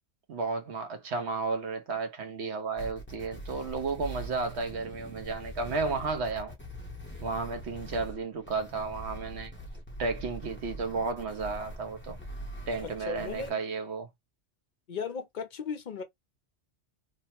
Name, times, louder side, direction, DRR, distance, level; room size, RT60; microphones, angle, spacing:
voice 1, 0.3-6.6 7.2-9.5 10.0-12.2 12.7-14.1, right 4 dB, 75° right, 1.0 m, -33 dB
sound 1, 2.8-13.5, right 1 dB, 15° left, 0.6 m, -43 dB
voice 2, 12.8-13.6 14.9-16.0, left 6 dB, 55° left, 0.6 m, -36 dB
3.0 x 2.1 x 2.8 m
omnidirectional pair, 1.2 m